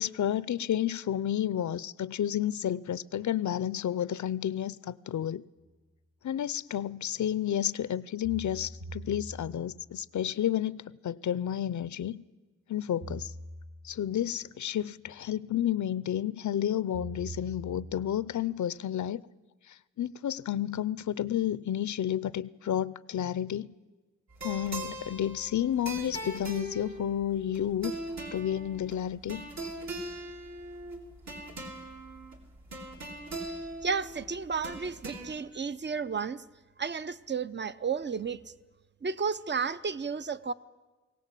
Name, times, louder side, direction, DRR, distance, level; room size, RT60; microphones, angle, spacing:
voice 1, 0.0-5.4 6.2-12.2 12.7-13.3 13.8-19.2 20.0-23.7 24.4-27.9 28.3-29.5, left 10 dB, 70° left, 0.6 m, -31 dB
sound 1, 5.6-5.7 8.2-9.9 13.0-14.1 16.9-18.3, right 1 dB, 90° right, 5.2 m, -43 dB
sound 2, 24.3-35.4, right 1 dB, 60° right, 3.5 m, -41 dB
voice 2, 33.8-36.4 36.8-38.4 39.0-40.5, right 5 dB, 35° right, 0.7 m, -32 dB
21.5 x 17.5 x 8.3 m
wide cardioid pair, 85°, 30 cm